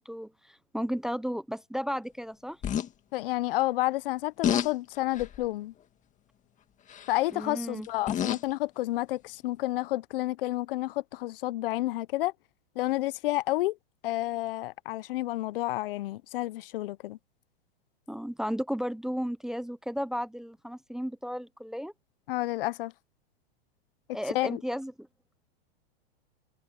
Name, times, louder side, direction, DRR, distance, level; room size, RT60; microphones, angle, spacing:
voice 1, 0.0-2.6 7.3-7.9 18.1-21.9 24.1-25.1, equal, ahead, 0.8 m, -34 dB
sound 1, 2.6-2.9 4.4-4.7 5.1-5.5 6.9-7.2 7.8-8.5 9.5-9.6, left 9 dB, 25° left, 2.0 m, -29 dB
voice 2, 3.1-5.7 7.1-12.3 12.8-13.8 14.0-17.2 22.3-22.9 24.3-24.6, left 17 dB, 65° left, 0.9 m, -30 dB
hypercardioid pair, 130°, 30 cm